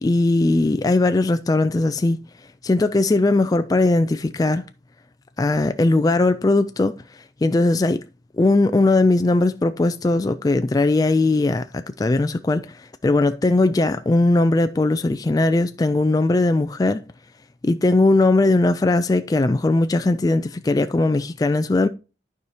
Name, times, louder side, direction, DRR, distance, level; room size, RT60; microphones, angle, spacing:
voice 1, 0.0-2.2 2.6-4.6 5.4-7.0 7.4-8.0 8.4-17.0 17.6-21.9, left 2 dB, 20° left, 0.3 m, -19 dB
12.0 x 4.8 x 2.8 m
head